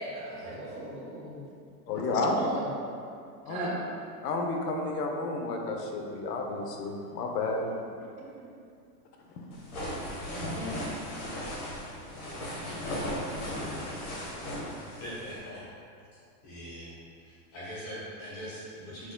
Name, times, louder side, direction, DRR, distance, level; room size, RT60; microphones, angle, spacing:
voice 1, 0.0-1.4 2.0-2.7 3.5-3.8 10.4-10.8, right 1 dB, 55° right, -5 dB, 1.2 m, -37 dB
voice 2, 1.9-2.3 3.4-3.7 4.2-7.6, left 3 dB, 75° left, 2 dB, 0.8 m, -31 dB
sound 1, 9.5-15.4, left 1 dB, 60° left, 1.4 m, -36 dB
voice 3, 14.9-15.6 16.4-16.9 17.2-19.1, equal, 30° left, -8 dB, 1.3 m, -42 dB
6.0 x 3.6 x 2.2 m, 2.4 s
supercardioid pair, 175°, 48 cm